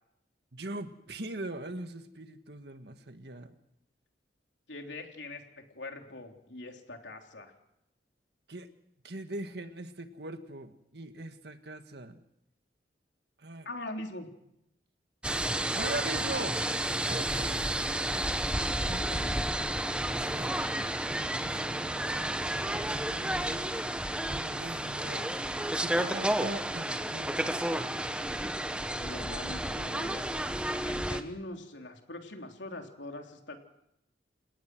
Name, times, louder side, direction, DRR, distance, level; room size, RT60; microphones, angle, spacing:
voice 1, 0.5-3.5 8.5-8.7 9.0-12.2 13.4-13.7 15.7-16.7 17.0-17.7 18.6-19.4 20.2-20.5 21.0-23.7 24.3-25.3 25.7-27.6, right 2 dB, 65° right, 8 dB, 1.8 m, -41 dB
voice 2, 4.7-7.5 13.6-14.3 28.7-30.3 30.8-33.6, left 2 dB, 85° left, 3 dB, 3.5 m, -43 dB
sound 1, 15.2-31.2, right 1 dB, 5° right, 1.1 m, -31 dB
29.0 x 18.5 x 6.2 m, 0.81 s
head